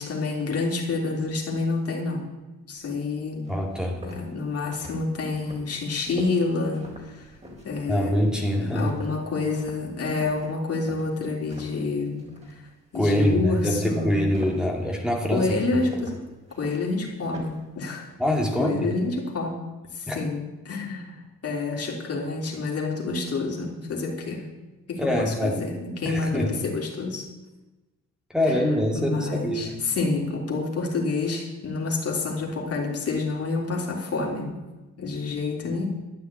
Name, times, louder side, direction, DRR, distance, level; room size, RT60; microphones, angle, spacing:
voice 1, 0.0-2.3 2.7-3.5 4.0-7.3 7.6-8.2 8.6-12.2 12.5-12.6 12.9-14.3 15.3-16.2 16.6-18.1 18.6-19.6 19.9-24.5 24.9-27.3 28.5-28.6 28.9-34.6 35.0-35.9, left 3 dB, 50° left, 0 dB, 3.4 m, -28 dB
sound 1, 3.0-3.1 3.4-11.9 12.2-12.6 12.9-17.7, equal, 20° right, 4.0 m, -43 dB
voice 2, 3.5-4.0 7.9-8.9 12.9-15.8 18.2-18.9 20.1-20.2 25.0-25.6 26.0-26.6 28.3-29.8, equal, ahead, -1 dB, 2.3 m, -24 dB
12.5 x 7.8 x 8.5 m, 1.1 s
cardioid pair, 90°, 30 cm